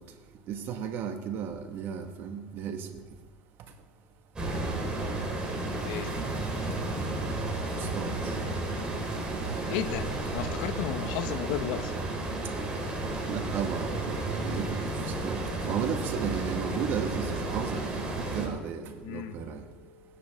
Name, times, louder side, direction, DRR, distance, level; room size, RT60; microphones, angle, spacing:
voice 1, 0.5-2.9 7.8-8.1 13.3-14.8 15.2-15.4 15.6-19.6, right 7 dB, 55° right, 5 dB, 1.7 m, -34 dB
sound 1, 4.4-18.5, right 2 dB, 20° right, 3.9 m, -32 dB
voice 2, 9.6-11.9 19.0-19.4, left 10 dB, 75° left, 10 dB, 1.0 m, -33 dB
19.5 x 10.0 x 3.7 m, 1.2 s
supercardioid pair, 115°, 5 cm